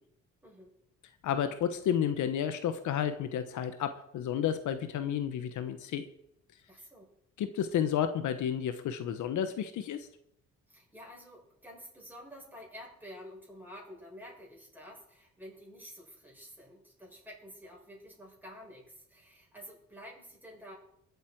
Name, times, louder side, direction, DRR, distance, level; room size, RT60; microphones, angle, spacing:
voice 1, 0.4-0.7 6.7-7.1 10.7-20.7, equal, 5° right, -3 dB, 7.3 m, -50 dB
voice 2, 1.2-6.1 7.4-10.1, left 9 dB, 75° left, 10 dB, 1.0 m, -31 dB
21.0 x 8.3 x 4.6 m, 0.76 s
cardioid pair, 90°, 30 cm